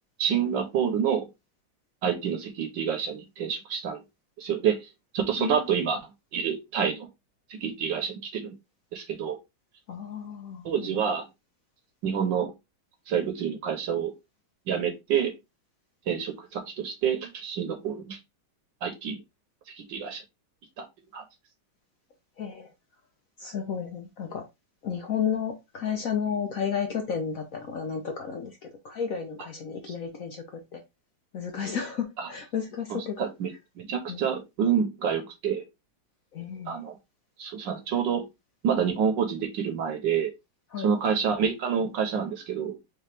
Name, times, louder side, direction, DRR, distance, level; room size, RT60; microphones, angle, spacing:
voice 1, 0.2-1.3 2.0-4.0 4.4-4.9 5.1-6.0 6.3-7.1 7.5-8.5 8.9-9.4 10.6-11.3 12.0-12.5 13.1-14.1 14.7-15.3 16.1-18.2 18.8-19.2 19.7-20.2 20.8-20.9 21.1-21.2 32.2-32.3 32.9-35.6 36.7-37.0 37.4-38.3 38.6-40.3 40.8-42.8, right 7 dB, 70° right, 1.4 m, -28 dB
voice 2, 9.9-11.0 22.4-22.7 23.4-24.4 24.8-28.6 28.8-30.4 30.7-30.8 31.3-33.3 34.1-34.2 36.3-36.8 40.7-40.9, left 7 dB, 60° left, 0.9 m, -32 dB
4.9 x 3.2 x 3.3 m
omnidirectional pair, 2.2 m